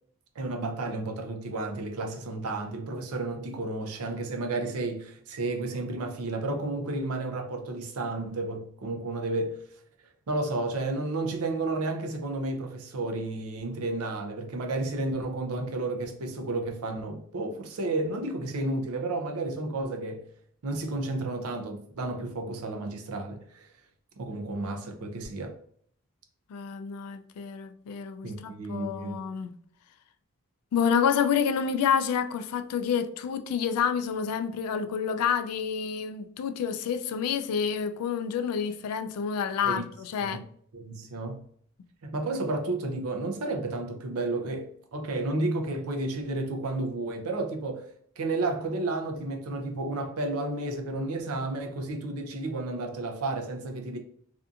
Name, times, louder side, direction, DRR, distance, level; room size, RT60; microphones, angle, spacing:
voice 1, 0.4-9.6 10.3-20.2 20.6-23.7 24.2-25.5 28.2-29.2 39.7-39.8 40.2-40.4 40.7-41.4 42.0-47.9 48.2-54.0, right 2 dB, 75° right, 0.5 m, -32 dB
voice 2, 26.5-29.5 30.7-40.4, left 7 dB, 85° left, 0.3 m, -28 dB
2.6 x 2.4 x 2.4 m
head